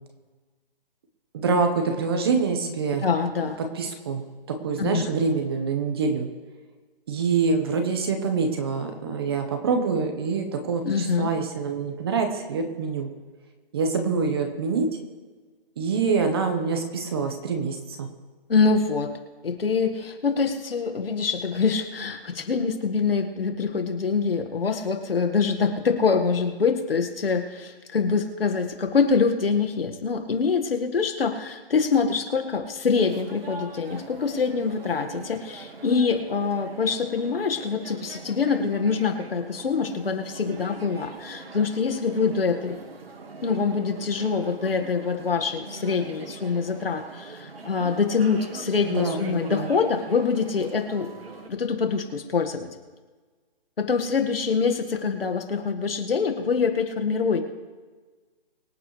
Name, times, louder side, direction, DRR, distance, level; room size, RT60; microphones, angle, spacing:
voice 1, 1.3-3.0 3.6-6.3 7.1-13.1 13.7-14.9 15.8-18.1 48.8-49.7, right 4 dB, 25° right, 5 dB, 1.2 m, -25 dB
voice 2, 3.0-3.6 4.8-5.0 10.9-11.3 18.5-19.1 19.4-42.8 43.4-51.1 51.5-52.7 53.8-57.4, left 5 dB, 70° left, 5 dB, 1.9 m, -25 dB
sound 1, 32.9-51.5, right 3 dB, 80° right, 2.0 m, -42 dB
24.0 x 8.9 x 3.3 m, 1.4 s
hypercardioid pair, 165°, 30 cm